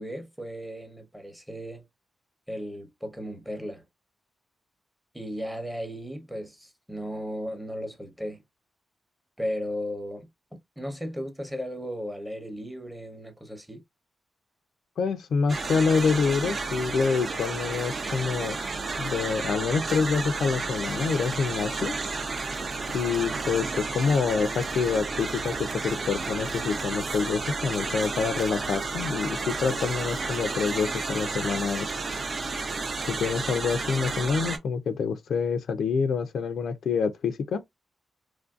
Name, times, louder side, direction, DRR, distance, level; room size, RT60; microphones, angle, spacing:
voice 1, 0.0-1.8 2.5-3.8 5.1-8.4 9.4-10.3 10.8-13.8, equal, 5° right, 0.8 m, -35 dB
voice 2, 15.0-18.6 19.0-21.9 22.9-31.9 33.1-37.6, left 5 dB, 85° left, 0.4 m, -27 dB
sound 1, 15.5-34.6, right 4 dB, 45° right, 0.5 m, -32 dB
3.1 x 2.5 x 2.3 m
cardioid pair, 105°, 0 cm